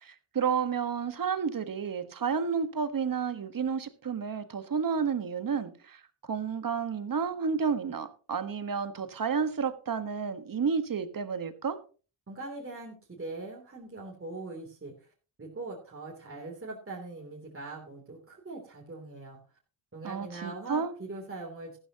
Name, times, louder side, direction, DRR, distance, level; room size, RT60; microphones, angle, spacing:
voice 1, 0.0-11.8 20.0-20.9, right 6 dB, 45° right, 1.5 m, -31 dB
voice 2, 12.3-14.9 15.4-19.4 19.9-21.8, right 3 dB, 25° right, 3.1 m, -41 dB
14.0 x 12.5 x 2.9 m
cardioid pair, 80°, 49 cm